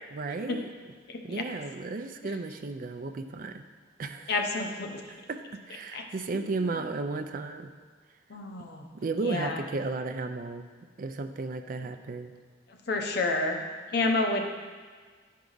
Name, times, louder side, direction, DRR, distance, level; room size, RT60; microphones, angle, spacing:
voice 1, 0.1-0.7 1.2-3.6 4.0-4.3 5.3-7.7 8.9-10.7 11.0-12.3, right 3 dB, 50° right, 7 dB, 0.4 m, -34 dB
voice 2, 1.1-1.4 4.3-5.0 5.9-6.0 6.3-6.4 8.3-8.9 9.2-9.6 12.9-13.6 13.9-14.5, left 3 dB, 60° left, 3 dB, 0.8 m, -29 dB
10.5 x 4.7 x 3.9 m, 1.5 s
head